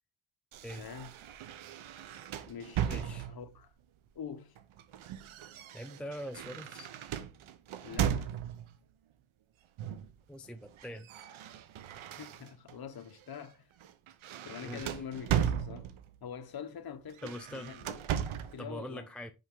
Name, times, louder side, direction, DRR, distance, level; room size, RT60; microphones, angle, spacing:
sound 1, 0.5-3.6 4.6-8.8 9.8-10.2 10.5-12.8 13.2-13.4 13.8-16.2 17.1-18.6, right 9 dB, 80° right, 0.8 m, -37 dB
voice 1, 0.8-1.1 2.5-3.7 4.1-4.6 7.8-8.3 12.2-13.6 14.4-15.9 16.2-18.0 18.5-19.1, left 7 dB, 50° left, 1.1 m, -45 dB
voice 2, 2.8-3.3 5.7-6.9 10.3-11.1 14.6-14.8 17.2-17.7 18.6-19.3, equal, ahead, 0.5 m, -43 dB
5.6 x 5.3 x 3.8 m
cardioid pair, 85°, 47 cm